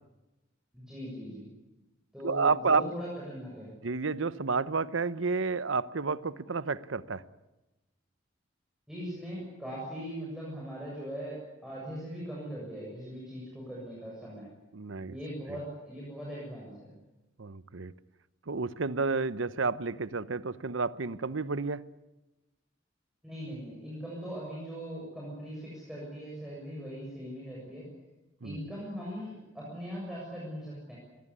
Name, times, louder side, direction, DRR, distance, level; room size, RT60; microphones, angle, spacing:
voice 1, 0.7-1.5 2.1-3.7 8.9-11.4 11.6-14.5 15.1-16.9 23.2-27.8 28.4-31.0, equal, 5° right, -6 dB, 7.2 m, -40 dB
voice 2, 2.2-2.9 3.8-7.2 14.7-15.2 17.4-17.9 18.5-21.8 28.4-28.6, right 4 dB, 75° right, 16 dB, 0.9 m, -30 dB
23.0 x 18.5 x 9.9 m, 1.0 s
head